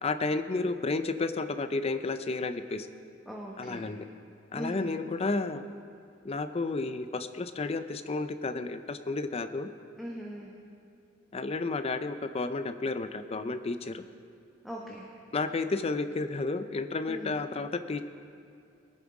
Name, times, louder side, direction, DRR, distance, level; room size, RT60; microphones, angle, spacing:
voice 1, 0.0-2.9 3.6-4.1 4.5-5.7 6.2-9.7 11.3-14.0 15.3-18.0, left 3 dB, 30° left, 11 dB, 0.5 m, -32 dB
voice 2, 3.3-3.9 4.5-4.9 10.0-10.5 14.6-15.1 17.1-17.4, equal, ahead, -3 dB, 1.0 m, -40 dB
20.5 x 7.2 x 4.8 m, 2.4 s
head